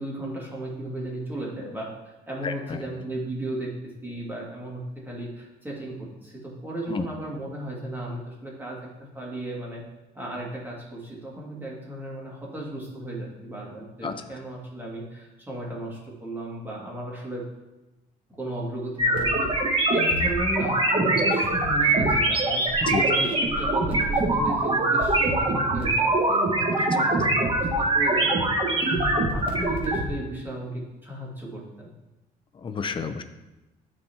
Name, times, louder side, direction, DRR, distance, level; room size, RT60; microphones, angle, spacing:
voice 1, 0.0-1.9 2.3-9.8 10.1-17.4 18.3-19.5 19.9-22.6 23.0-31.9, right 1 dB, 10° right, -4 dB, 2.2 m, -35 dB
voice 2, 2.4-2.8 6.9-7.1 14.0-14.1 22.8-23.0 32.5-33.2, left 6 dB, 30° left, 9 dB, 0.6 m, -30 dB
sound 1, 19.0-30.0, right 2 dB, 30° right, 1.5 m, -23 dB
12.0 x 4.3 x 2.9 m, 1.0 s
cardioid pair, 110°, 17 cm